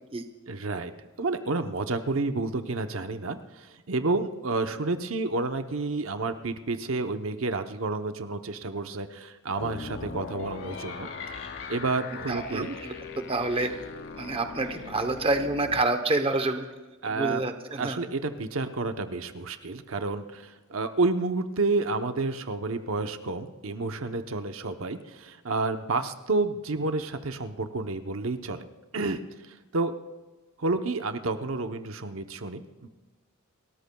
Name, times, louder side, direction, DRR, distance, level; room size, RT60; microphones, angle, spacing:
voice 1, 0.5-0.9 1.2-11.4 11.7-12.8 17.0-17.4 17.8-28.6 28.9-29.2 29.5-29.9 30.6-32.9, right 3 dB, 70° right, 8 dB, 0.8 m, -30 dB
sound 1, 9.5-15.8, left 4 dB, 45° left, 0.6 m, -40 dB
sound 2, 10.3-15.4, left 4 dB, 70° left, 2.7 m, -47 dB
voice 2, 12.3-13.7 14.1-16.7 17.1-18.0, right 2 dB, 25° right, 7 dB, 0.8 m, -28 dB
30.0 x 13.5 x 2.3 m, 1.2 s
head